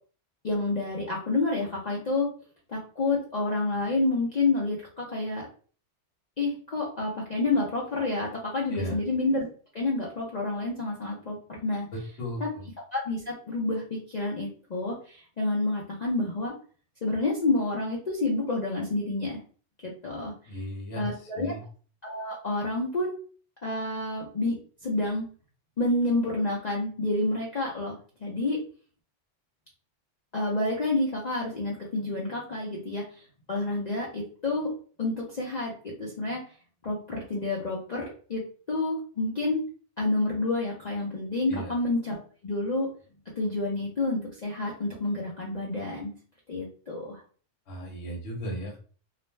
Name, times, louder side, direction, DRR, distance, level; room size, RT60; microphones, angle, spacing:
voice 1, 0.4-2.3 2.7-5.5 6.4-9.4 9.7-11.9 12.4-12.5 12.9-16.5 17.0-19.4 19.8-20.3 21.0-21.6 22.0-23.2 23.6-25.3 25.8-28.0 28.2-28.6 30.3-33.0 33.5-34.7 35.0-36.4 36.8-38.4 38.7-39.6 40.0-42.2 42.4-42.9 43.4-46.1 46.5-47.2, left 2 dB, 50° left, -4 dB, 0.5 m, -29 dB
voice 2, 11.9-12.7 20.5-21.6 41.5-41.7 47.7-48.8, equal, 65° left, 0 dB, 1.0 m, -36 dB
2.4 x 2.1 x 3.1 m, 0.41 s
omnidirectional pair, 1.3 m